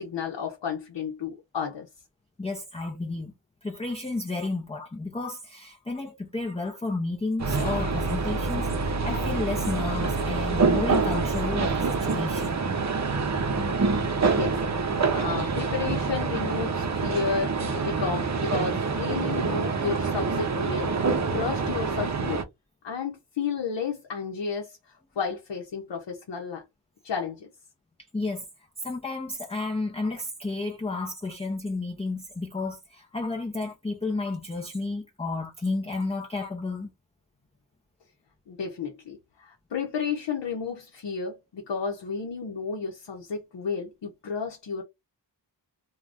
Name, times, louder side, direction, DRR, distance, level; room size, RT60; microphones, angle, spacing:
voice 1, 0.0-1.9 14.1-14.6 15.1-22.4 22.8-26.6 27.0-27.5 38.5-44.8, left 5 dB, 90° left, 0.8 m, -32 dB
voice 2, 2.4-3.3 3.6-12.6 28.1-28.4 28.8-36.9, left 3 dB, 15° left, 0.5 m, -32 dB
sound 1, 7.4-22.4, right 4 dB, 40° right, 0.6 m, -26 dB
2.5 x 2.3 x 3.3 m
wide cardioid pair, 80°, 42 cm